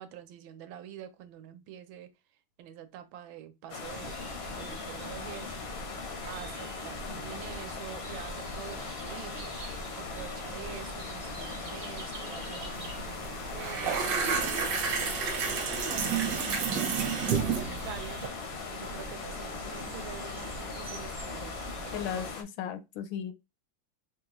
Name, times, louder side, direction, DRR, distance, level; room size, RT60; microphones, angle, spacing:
voice 1, 0.0-2.1 2.6-4.2 4.5-5.5 6.2-9.6 10.0-14.6 15.5-18.2 18.7-22.3, right 10 dB, 85° right, 1.4 m, -46 dB
sound 1, 3.7-22.4, left 5 dB, 65° left, 0.6 m, -40 dB
sound 2, 3.8-22.3, right 2 dB, 45° right, 0.6 m, -44 dB
sound 3, 12.8-13.0 13.2-18.3, right 6 dB, 65° right, 1.5 m, -30 dB
voice 2, 21.9-23.3, left 9 dB, 85° left, 1.3 m, -36 dB
5.0 x 2.3 x 2.9 m
omnidirectional pair, 2.1 m